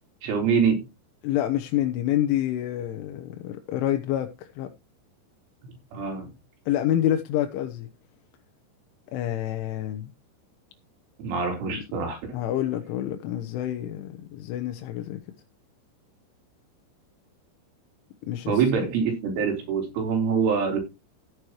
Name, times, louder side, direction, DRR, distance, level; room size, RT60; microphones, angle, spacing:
voice 1, 0.2-0.8 5.9-6.3 11.2-12.4 18.5-20.8, right 6 dB, 90° right, 6.2 m, -25 dB
voice 2, 1.2-4.7 6.7-7.9 9.1-10.1 11.7-11.8 12.3-15.2 18.3-18.9, left 12 dB, 85° left, 3.4 m, -28 dB
14.5 x 9.6 x 3.1 m
omnidirectional pair, 5.5 m